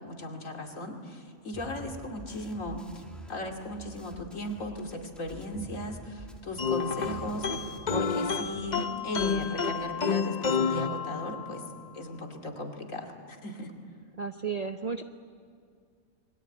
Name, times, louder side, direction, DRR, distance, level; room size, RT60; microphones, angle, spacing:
voice 1, 0.0-3.0 3.3-11.6 11.9-13.7, left 1 dB, 65° left, 3 dB, 2.9 m, -37 dB
sound 1, 1.5-8.8 9.1-9.5, equal, ahead, 1.9 m, -48 dB
sound 2, 6.6-11.6, left 6 dB, 35° left, 0.8 m, -30 dB
sound 3, 7.0-10.4, equal, 65° right, 4.4 m, -47 dB
voice 2, 14.2-15.0, right 5 dB, 35° right, 6 dB, 0.7 m, -33 dB
28.0 x 22.0 x 9.1 m, 2.2 s
omnidirectional pair, 1.5 m